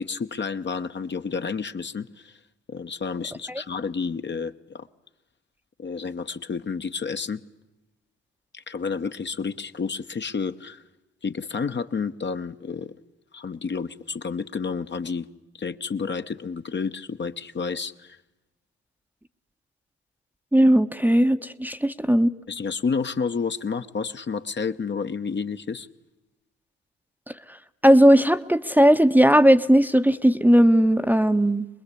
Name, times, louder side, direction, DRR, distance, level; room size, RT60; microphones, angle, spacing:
voice 1, 0.0-2.4 2.7-4.9 5.8-7.4 8.5-10.8 11.2-12.9 13.3-15.3 15.5-18.2 22.5-25.9, left 5 dB, 35° left, 8 dB, 1.0 m, -30 dB
voice 2, 20.5-22.3 27.8-31.7, equal, 5° right, 8 dB, 1.0 m, -17 dB
24.0 x 21.0 x 8.4 m, 0.99 s
hypercardioid pair, 55°, 33 cm